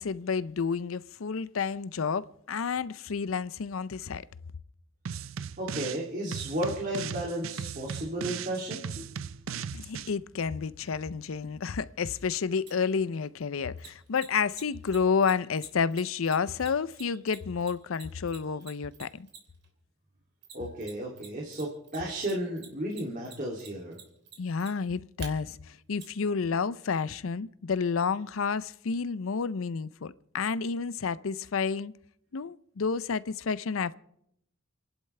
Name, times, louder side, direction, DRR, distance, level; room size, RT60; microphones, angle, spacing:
voice 1, 0.0-4.2 9.7-19.3 24.4-31.9 32.3-33.9, left 5 dB, 85° left, 0.5 m, -30 dB
sound 1, 5.1-6.0 6.3-10.1, right 7 dB, 75° right, 0.5 m, -37 dB
voice 2, 5.6-9.0 20.5-24.0, right 1 dB, 40° right, 2.7 m, -33 dB
Mechanisms, 12.7-12.8 13.8-19.6 20.4-21.3 21.5-25.3 26.0-26.1, right 7 dB, 55° right, 3.1 m, -47 dB
30.0 x 11.0 x 3.3 m
head